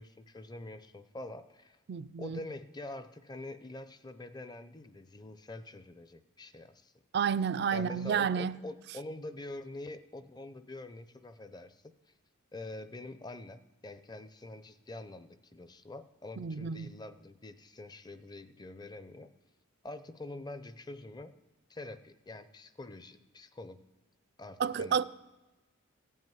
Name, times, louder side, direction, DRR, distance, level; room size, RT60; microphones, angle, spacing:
voice 1, 0.0-1.8 2.2-6.9 7.7-12.1 12.5-19.3 19.8-21.3 21.7-23.8 24.4-25.0, left 2 dB, 20° left, 0.5 m, -45 dB
voice 2, 1.9-2.4 7.1-8.5 16.4-16.9 24.6-25.0, right 7 dB, 50° right, 0.4 m, -30 dB
15.0 x 5.5 x 9.3 m
head